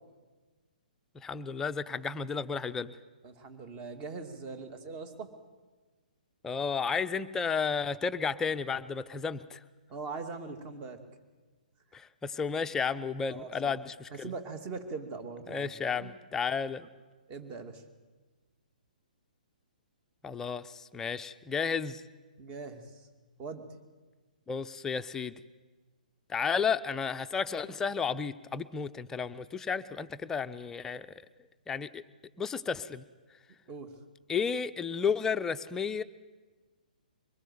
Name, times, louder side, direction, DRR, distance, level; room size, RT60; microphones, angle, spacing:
voice 1, 1.1-2.9 6.4-9.6 11.9-14.3 15.5-16.9 20.2-22.0 24.5-25.4 26.3-31.1 31.7-32.0 32.4-33.0 34.3-36.0, left 5 dB, 10° left, 11 dB, 0.6 m, -32 dB
voice 2, 3.2-5.3 9.9-11.0 13.3-13.8 14.1-16.1 17.3-17.8 22.4-23.1 23.4-23.6 33.7-33.9, right 4 dB, 25° right, 8 dB, 2.4 m, -41 dB
23.0 x 20.5 x 7.9 m, 1.3 s
figure-of-eight pair, 125°, 5 cm